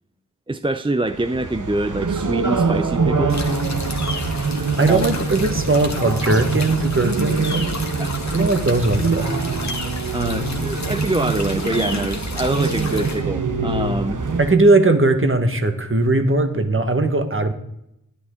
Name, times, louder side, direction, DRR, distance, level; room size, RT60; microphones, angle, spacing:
voice 1, 0.5-3.4 4.9-5.0 8.0-8.1 10.1-14.2, right 2 dB, 15° right, 10 dB, 0.5 m, -25 dB
sound 1, 1.1-14.5, right 4 dB, 60° right, 1.1 m, -24 dB
sound 2, 3.3-13.2, left 3 dB, 55° left, 1.6 m, -33 dB
voice 2, 4.8-7.8 8.3-9.3 14.4-17.5, right 2 dB, 35° right, 7 dB, 1.3 m, -19 dB
11.5 x 10.5 x 3.6 m, 0.80 s
wide cardioid pair, 50°, 34 cm